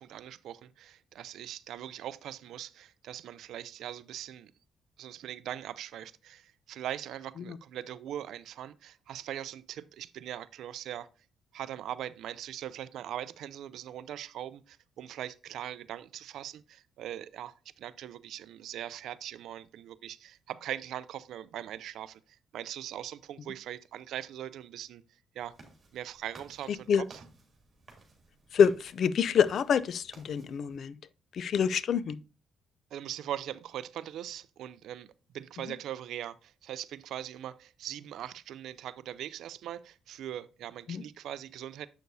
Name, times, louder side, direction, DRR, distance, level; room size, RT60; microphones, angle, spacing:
voice 1, 0.0-4.5 5.0-11.1 11.5-25.0 25.3-25.5 25.9-27.2 32.9-35.1 35.3-41.9, right 11 dB, 80° right, 0.4 m, -41 dB
sound 1, 25.4-30.8, right 3 dB, 40° right, 2.9 m, -56 dB
voice 2, 28.5-30.9 31.3-32.2 40.9-41.0, left 7 dB, 60° left, 0.4 m, -26 dB
7.9 x 6.5 x 2.7 m
cardioid pair, 90°, 0 cm